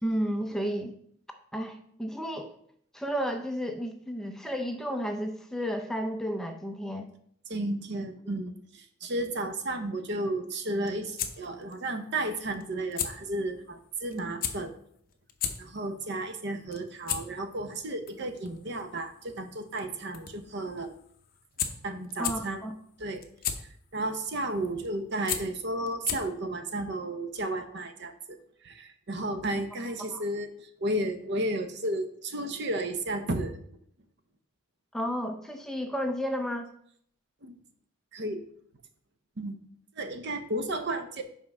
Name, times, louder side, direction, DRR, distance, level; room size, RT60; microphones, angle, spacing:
voice 1, 0.0-0.9 1.5-2.5 2.9-7.1 22.2-22.7 30.1-30.2 34.9-36.7, equal, ahead, 4 dB, 0.5 m, -32 dB
voice 2, 7.5-14.7 15.6-20.9 21.8-22.6 23.0-23.2 23.6-33.6 37.4-37.6 38.1-38.4 39.4-39.6 39.9-41.2, right 1 dB, 55° right, 8 dB, 0.7 m, -33 dB
sound 1, 10.6-26.5, left 9 dB, 45° left, 0.7 m, -38 dB
5.4 x 4.6 x 6.0 m, 0.66 s
head